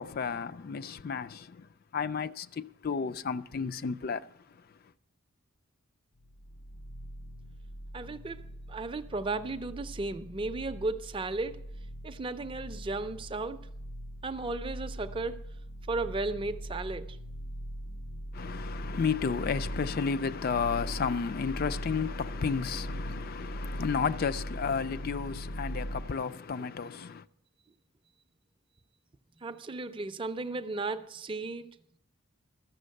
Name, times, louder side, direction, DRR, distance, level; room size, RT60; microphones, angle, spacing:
voice 1, 0.0-4.3 18.3-27.2, left 5 dB, 45° left, 0.3 m, -32 dB
sound 1, 6.2-26.0, equal, 80° left, 0.7 m, -41 dB
voice 2, 7.9-11.6 12.0-13.7 14.2-15.4 15.9-17.2 29.4-31.6, right 3 dB, 25° right, 0.4 m, -35 dB
13.5 x 7.0 x 6.5 m
head